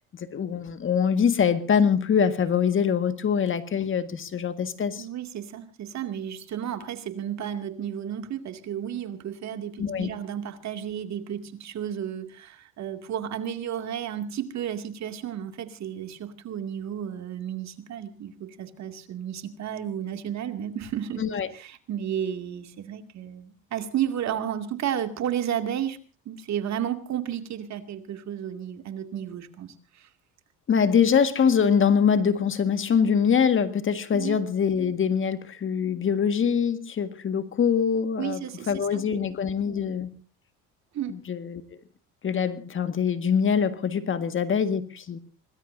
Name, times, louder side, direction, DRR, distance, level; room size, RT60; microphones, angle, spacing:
voice 1, 0.2-5.1 9.8-10.1 21.2-21.5 30.7-38.4 38.7-40.1 41.1-41.6 42.2-45.2, left 7 dB, 40° left, 1.8 m, -24 dB
voice 2, 5.0-21.2 21.5-26.0 26.3-30.1 34.1-34.4 38.2-39.2 39.7-39.9 40.9-41.1, right 9 dB, 55° right, 2.4 m, -32 dB
26.0 x 20.0 x 2.7 m
cardioid pair, 110°, 33 cm